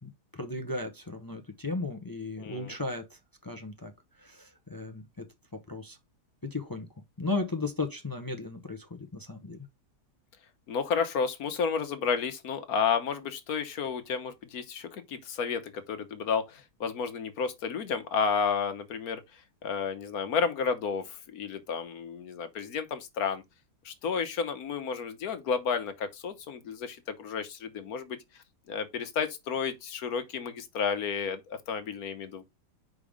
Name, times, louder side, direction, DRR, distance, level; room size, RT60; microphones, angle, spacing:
voice 1, 0.0-3.9 4.2-5.2 5.7-6.0 6.4-6.9 7.2-9.7, left 3 dB, 35° left, 0.3 m, -35 dB
voice 2, 2.4-2.7 10.7-19.2 19.6-23.4 23.8-28.2 28.7-32.4, left 6 dB, 65° left, 1.3 m, -31 dB
5.2 x 3.7 x 5.0 m
omnidirectional pair, 1.8 m